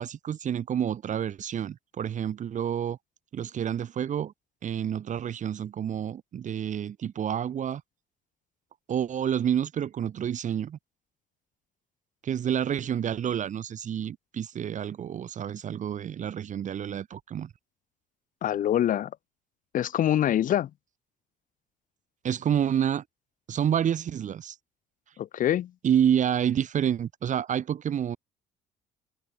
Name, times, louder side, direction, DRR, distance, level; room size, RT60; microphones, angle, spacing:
voice 1, 0.0-3.0 3.3-4.3 4.6-7.8 8.9-10.8 12.2-17.5 22.2-23.0 23.5-24.5 25.8-28.2, right 9 dB, 45° right, 1.6 m, -28 dB
voice 2, 18.4-19.1 19.7-20.7 25.2-25.7, left 11 dB, 55° left, 0.8 m, -25 dB
cardioid pair, 110°, 17 cm